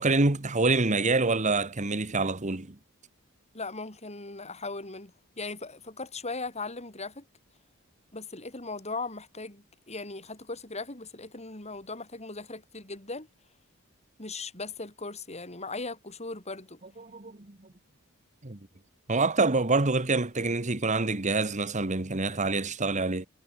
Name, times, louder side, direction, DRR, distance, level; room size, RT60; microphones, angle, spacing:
voice 1, 0.0-2.7 17.0-17.6 18.4-18.6 19.1-23.3, right 3 dB, 35° right, 1.5 m, -26 dB
voice 2, 3.5-7.2 8.1-13.3 14.2-16.8, left 3 dB, 30° left, 5.9 m, -38 dB
head